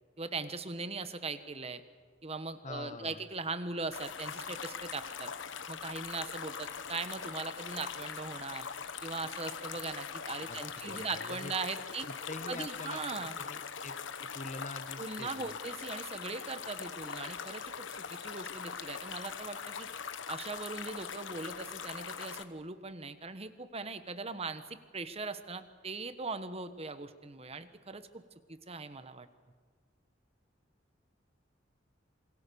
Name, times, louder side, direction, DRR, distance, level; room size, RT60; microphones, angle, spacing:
voice 1, 0.2-1.8 2.2-5.3 5.7-8.7 9.0-12.1 12.5-13.4 15.0-19.9 20.3-28.2 28.5-29.3, right 3 dB, 30° right, 11 dB, 1.3 m, -40 dB
voice 2, 2.6-3.3 10.5-11.5 12.1-13.9 14.3-15.6, left 3 dB, 40° left, 11 dB, 1.2 m, -45 dB
sound 1, 3.9-22.5, left 6 dB, 75° left, 1.2 m, -42 dB
27.0 x 23.0 x 7.0 m, 1.5 s
head